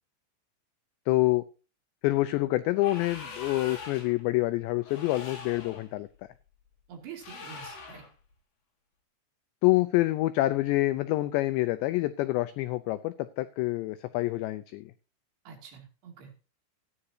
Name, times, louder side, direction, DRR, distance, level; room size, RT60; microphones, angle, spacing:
voice 1, 1.1-1.4 2.0-6.1 9.6-14.9, left 18 dB, 90° left, 12 dB, 2.5 m, -27 dB
sound 1, 2.7-4.2 4.8-5.9 7.2-8.1, left 4 dB, 60° left, 4.3 m, -43 dB
voice 2, 6.9-8.1 15.5-16.3, right 7 dB, 60° right, 1 dB, 4.3 m, -46 dB
14.5 x 9.8 x 2.8 m, 0.34 s
omnidirectional pair, 5.7 m